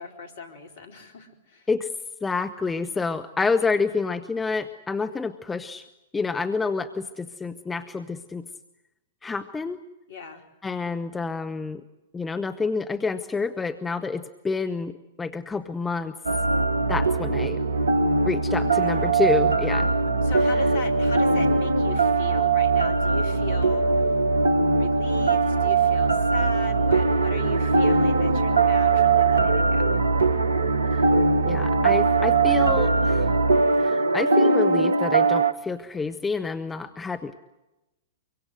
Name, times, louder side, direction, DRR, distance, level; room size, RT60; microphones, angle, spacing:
voice 1, 0.0-1.7 10.1-10.4 18.8-19.0 20.2-24.2 24.7-30.1, left 4 dB, 55° left, 5 dB, 4.4 m, -39 dB
voice 2, 2.2-5.8 6.1-8.5 9.2-9.8 10.6-11.8 12.1-16.2 16.9-17.6 18.2-19.9 31.4-33.3 33.8-37.4, left 4 dB, 10° left, 10 dB, 1.0 m, -28 dB
sound 1, 16.3-35.5, right 3 dB, 75° right, 1.1 m, -21 dB
25.0 x 24.0 x 7.9 m, 0.97 s
figure-of-eight pair, 105°, 0 cm